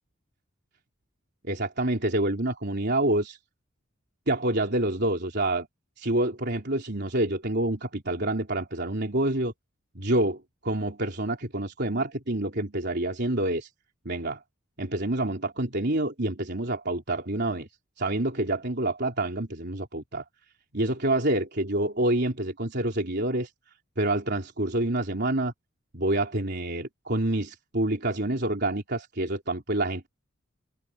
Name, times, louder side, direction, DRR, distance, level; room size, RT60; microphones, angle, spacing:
voice 1, 1.4-3.4 4.3-5.7 6.0-9.5 10.0-13.7 14.1-14.4 14.8-17.7 18.0-20.2 20.7-23.5 24.0-25.5 25.9-30.1, right 1 dB, 55° right, 3.8 m, -27 dB
head